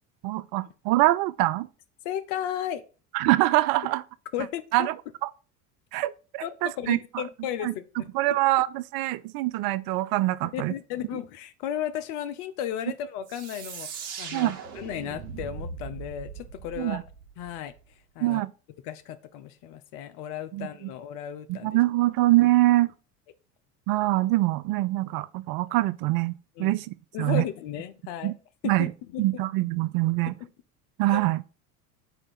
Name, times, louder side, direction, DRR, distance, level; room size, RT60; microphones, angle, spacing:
voice 1, 0.2-1.7 3.1-4.0 4.7-4.9 5.2-5.3 5.9-7.2 7.6-7.7 8.1-10.7 14.3-14.6 16.8-17.0 18.2-18.5 20.5-20.9 21.5-22.9 23.9-26.3 26.6-27.4 28.2-28.3 28.6-28.9 29.2-30.3 31.0-31.4, right 17 dB, 55° right, 0.5 m, -24 dB
voice 2, 2.0-2.8 4.3-4.9 6.4-8.1 10.5-17.0 17.4-17.7 18.1-18.4 18.8-21.8 26.6-26.8 27.1-28.3 28.6-29.4 30.4-30.5 31.1-31.2, left 10 dB, 60° left, 0.9 m, -34 dB
sound 1, 13.3-17.8, right 6 dB, 85° right, 1.1 m, -40 dB
4.5 x 4.5 x 5.7 m
hypercardioid pair, 75°, 46 cm